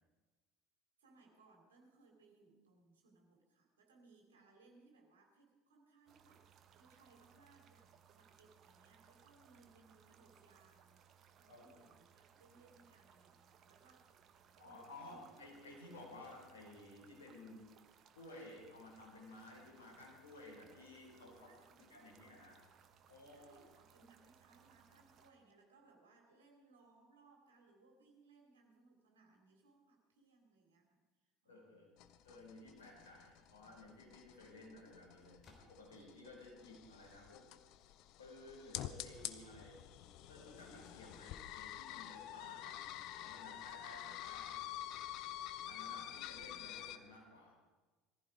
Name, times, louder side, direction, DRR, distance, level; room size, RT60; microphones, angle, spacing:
voice 1, 1.0-11.1 11.4-14.1 14.6-15.5 21.4-22.2 23.2-31.9 42.6-43.0, right 3 dB, 75° right, 2 dB, 3.1 m, -67 dB
sound 1, 6.1-25.3, right 8 dB, 45° right, 1.3 m, -66 dB
voice 2, 11.5-11.8 14.5-17.7 18.1-22.6 23.1-23.7 31.4-31.9 32.2-37.5 38.2-39.8 40.3-44.6 45.6-47.5, left 2 dB, 75° left, -3 dB, 5.9 m, -55 dB
sound 2, 32.0-47.0, left 12 dB, 55° left, 0.8 m, -48 dB
sound 3, 35.4-36.1 39.1-39.8, left 3 dB, 40° left, 3.7 m, -65 dB
20.0 x 14.5 x 4.9 m, 1.3 s
figure-of-eight pair, 65°, 0 cm